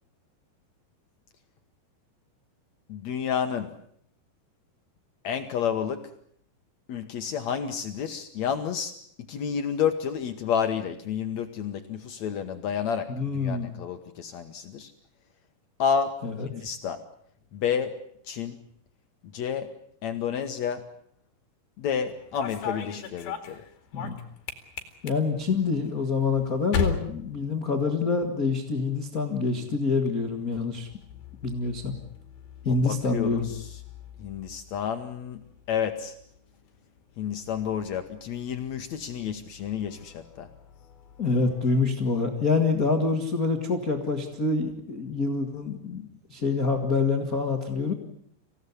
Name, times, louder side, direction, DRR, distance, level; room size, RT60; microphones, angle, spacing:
voice 1, 2.9-3.7 5.2-6.0 6.9-8.9 9.3-14.9 15.8-16.1 16.4-17.0 17.5-18.6 19.3-19.7 20.0-20.8 21.8-23.6 32.7-33.8 34.2-36.2 37.2-40.5, left 7 dB, 85° left, 7 dB, 1.5 m, -30 dB
voice 2, 13.1-13.7 16.2-16.5 23.9-24.2 25.0-30.9 31.4-32.0 32.6-33.5 41.2-47.9, left 4 dB, 40° left, 4 dB, 1.3 m, -26 dB
sound 1, 22.1-28.3 28.5-29.1 30.2-41.8, left 7 dB, 60° left, 3.9 m, -39 dB
26.5 x 17.0 x 9.8 m, 0.68 s
omnidirectional pair, 5.2 m